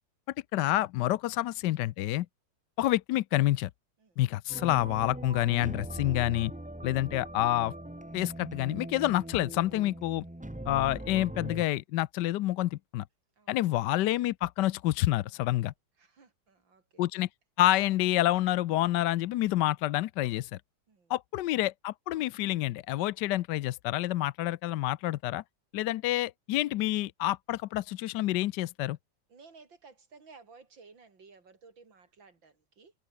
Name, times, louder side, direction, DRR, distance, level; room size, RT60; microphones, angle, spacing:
voice 1, 0.5-2.3 2.8-3.7 4.2-6.5 6.8-7.7 8.1-10.2 10.7-13.0 13.5-15.7 17.0-17.3 17.6-20.6 21.1-25.4 25.7-29.0, left 15 dB, 75° left, 1.2 m, -28 dB
sound 1, 4.5-11.7, right 1 dB, 5° right, 0.6 m, -41 dB
voice 2, 16.0-17.1 20.9-21.1 29.3-32.9, right 4 dB, 90° right, 4.2 m, -56 dB
omnidirectional pair, 2.0 m